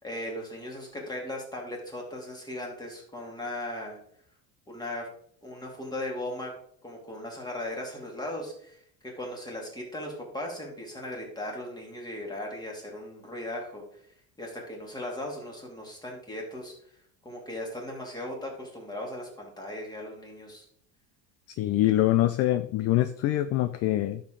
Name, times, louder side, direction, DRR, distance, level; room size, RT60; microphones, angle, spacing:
voice 1, 0.0-4.0 4.7-5.1 5.4-6.5 6.8-13.8 14.4-16.7 17.2-20.7, left 1 dB, 10° left, 0 dB, 2.6 m, -37 dB
voice 2, 21.6-24.2, left 14 dB, 45° left, 11 dB, 0.5 m, -24 dB
11.0 x 6.6 x 3.9 m, 0.63 s
cardioid pair, 150°, 35 cm